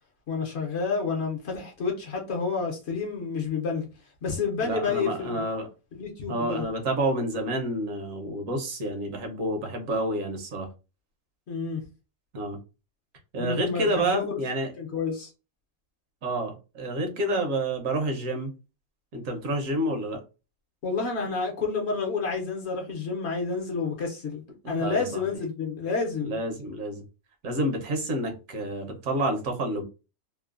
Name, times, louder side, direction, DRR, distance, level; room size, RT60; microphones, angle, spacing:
voice 1, 0.3-3.9 4.2-5.4 5.9-6.6 11.5-11.8 13.4-14.4 14.8-15.3 20.8-26.4, left 5 dB, 60° left, 0.8 m, -29 dB
voice 2, 4.6-5.7 6.3-10.7 12.3-12.6 13.3-14.7 16.2-18.5 19.1-20.2 24.6-25.2 26.2-27.0 27.4-29.8, right 1 dB, 70° right, 1.1 m, -29 dB
3.0 x 2.0 x 2.3 m
omnidirectional pair, 1.5 m